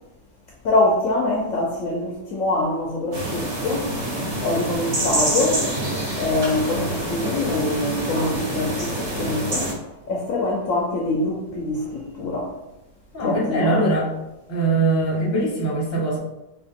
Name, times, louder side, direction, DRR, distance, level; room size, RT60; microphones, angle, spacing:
voice 1, 0.6-3.9 4.1-5.6 6.2-9.7 10.1-12.5 13.2-13.8, left 2 dB, 65° left, -2 dB, 0.8 m, -24 dB
sound 1, 3.1-9.7, right 1 dB, 55° right, 1.9 m, -26 dB
voice 2, 13.1-14.1 14.5-16.2, right 2 dB, 15° left, -4 dB, 0.6 m, -22 dB
3.7 x 2.6 x 3.5 m, 0.91 s
omnidirectional pair, 1.8 m